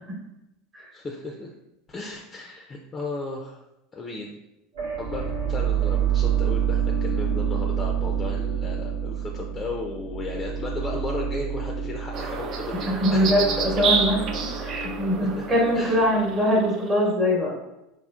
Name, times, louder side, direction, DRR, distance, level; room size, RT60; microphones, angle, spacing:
voice 1, 0.9-1.5 1.9-3.6 3.9-4.4 5.0-13.3 15.2-15.4 15.7-16.0, left 3 dB, 25° left, 1 dB, 0.4 m, -35 dB
sound 1, 4.7-16.7, right 8 dB, 80° right, 0.8 m, -28 dB
sound 2, 12.1-17.0, right 5 dB, 45° right, 0.4 m, -30 dB
voice 2, 12.9-14.2 14.6-17.5, equal, 30° right, -2 dB, 1.0 m, -22 dB
4.2 x 2.0 x 2.3 m, 0.90 s
hypercardioid pair, 80°, 0 cm